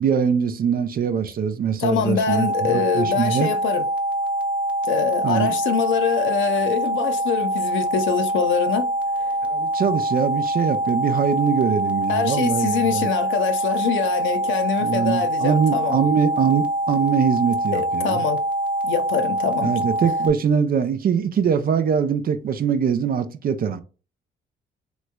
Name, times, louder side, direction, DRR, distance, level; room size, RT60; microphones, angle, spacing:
voice 1, 0.0-3.5 5.2-5.6 9.4-13.1 14.8-18.2 19.6-23.8, right 7 dB, 45° right, 0.5 m, -22 dB
voice 2, 1.8-3.8 4.8-8.9 9.2-9.4 12.1-16.0 17.7-18.4 18.8-19.7, left 7 dB, 75° left, 0.6 m, -24 dB
sound 1, 2.3-20.3, right 1 dB, 5° right, 0.8 m, -24 dB
3.2 x 3.0 x 2.2 m
cardioid pair, 90°, 20 cm